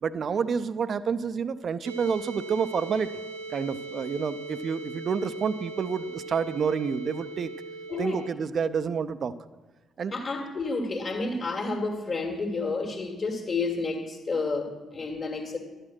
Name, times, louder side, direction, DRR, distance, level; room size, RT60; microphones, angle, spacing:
voice 1, 0.0-3.1 3.5-7.5 8.0-9.3 10.0-10.1, right 6 dB, 50° right, 14 dB, 0.5 m, -29 dB
sound 1, 1.8-8.3, right 3 dB, 85° right, 0.7 m, -40 dB
voice 2, 7.9-8.2 10.1-15.6, left 3 dB, 45° left, 0 dB, 1.9 m, -30 dB
12.0 x 9.0 x 6.2 m, 1.2 s
figure-of-eight pair, 40°, 0 cm